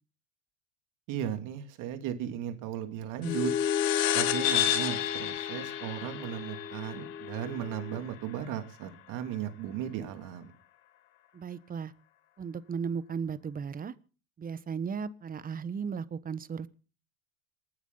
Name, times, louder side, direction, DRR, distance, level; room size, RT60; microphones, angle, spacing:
voice 1, 1.1-3.5 4.1-10.5, right 9 dB, 55° right, 7 dB, 2.7 m, -36 dB
sound 1, 3.2-8.1, left 13 dB, 65° left, 1.5 m, -32 dB
sound 2, 3.2-8.0, left 7 dB, 25° left, 1.3 m, -34 dB
voice 2, 11.3-11.9 12.4-13.9 14.4-16.7, right 6 dB, 25° right, 17 dB, 1.1 m, -35 dB
27.5 x 9.5 x 3.9 m, 0.38 s
hypercardioid pair, 90°, 36 cm